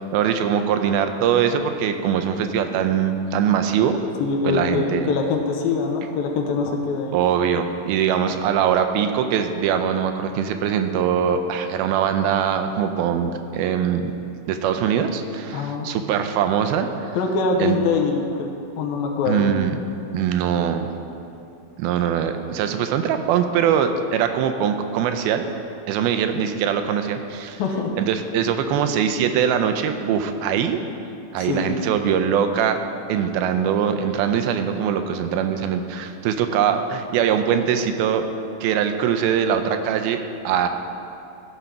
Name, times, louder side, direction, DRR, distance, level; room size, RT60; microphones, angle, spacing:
voice 1, 0.0-4.0 4.4-5.1 7.1-14.0 14.5-17.1 17.6-17.8 19.3-19.8 20.1-20.9 21.8-25.5 25.9-27.6 28.0-30.8 31.3-32.8 33.1-38.3 38.6-40.2 40.4-40.7, right 8 dB, 85° right, 7 dB, 2.4 m, -22 dB
voice 2, 4.2-7.2 15.5-15.9 17.1-18.5 18.8-19.5 27.6-27.9 31.5-31.7, left 4 dB, 75° left, 2 dB, 2.5 m, -23 dB
14.0 x 5.2 x 5.6 m, 2.6 s
omnidirectional pair, 4.3 m